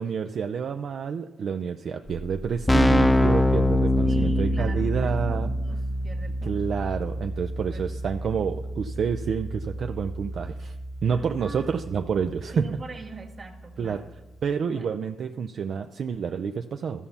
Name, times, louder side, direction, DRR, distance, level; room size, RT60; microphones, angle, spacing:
voice 1, 0.0-5.5 6.4-10.8 11.0-12.8 13.8-14.0 14.4-17.1, right 6 dB, 65° right, 7 dB, 0.4 m, -28 dB
Keyboard (musical), 2.1-2.2 2.4-13.0, left 1 dB, 15° left, 0.6 m, -26 dB
voice 2, 4.0-7.0 7.7-7.9 8.3-8.5 11.1-11.7 12.5-14.1 14.7-14.9, right 3 dB, 40° right, 3 dB, 1.7 m, -42 dB
12.5 x 5.7 x 5.6 m, 1.1 s
supercardioid pair, 55°, 0 cm